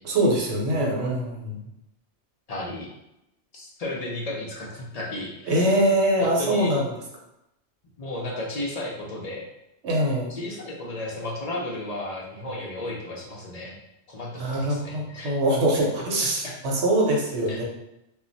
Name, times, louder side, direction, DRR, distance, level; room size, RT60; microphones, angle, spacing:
voice 1, 0.0-1.7 5.5-6.8 9.8-10.4 14.4-17.6, right 1 dB, 70° right, -2 dB, 1.0 m, -23 dB
voice 2, 2.5-2.9 3.5-5.7 6.2-6.7 8.0-9.4 10.3-13.8 14.1-15.3 15.7-16.6 17.5-17.6, left 1 dB, 60° left, -2 dB, 0.4 m, -34 dB
2.2 x 2.0 x 3.8 m, 0.86 s
omnidirectional pair, 1.2 m